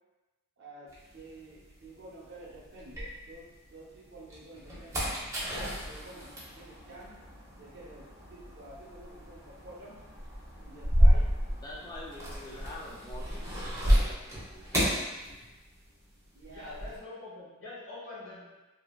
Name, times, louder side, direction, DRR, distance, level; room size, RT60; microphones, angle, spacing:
voice 1, 0.6-3.0 3.2-7.2 7.6-10.0 10.6-11.3 11.9-12.4 16.3-16.9, right 2 dB, 60° right, -4 dB, 0.7 m, -50 dB
sound 1, 0.9-3.7 4.1-15.9 16.2-17.0, equal, 15° right, 0.7 m, -30 dB
voice 2, 11.6-14.9, left 1 dB, 20° left, -4 dB, 0.3 m, -46 dB
voice 3, 16.5-18.6, left 2 dB, 85° left, -9 dB, 1.3 m, -44 dB
2.8 x 2.6 x 2.2 m, 1.1 s
head